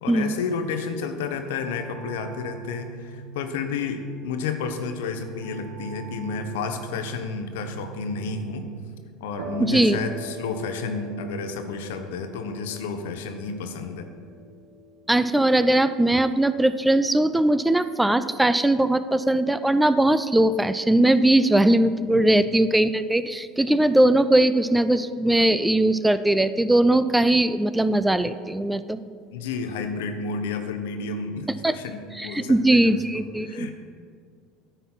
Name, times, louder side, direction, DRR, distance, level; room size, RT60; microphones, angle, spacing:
voice 1, 0.0-8.7 9.2-14.1 22.1-22.2 29.3-33.0 33.4-33.7, left 4 dB, 80° left, 7 dB, 0.8 m, -31 dB
sound 1, 1.4-8.8, right 5 dB, 60° right, 0.5 m, -42 dB
sound 2, 9.4-16.8, right 3 dB, 80° right, 1.3 m, -43 dB
voice 2, 9.6-10.0 15.1-29.0 31.6-31.7 32.2-33.7, right 1 dB, 10° right, 13 dB, 0.3 m, -20 dB
9.8 x 4.0 x 5.9 m, 2.1 s
hypercardioid pair, 85°, 0 cm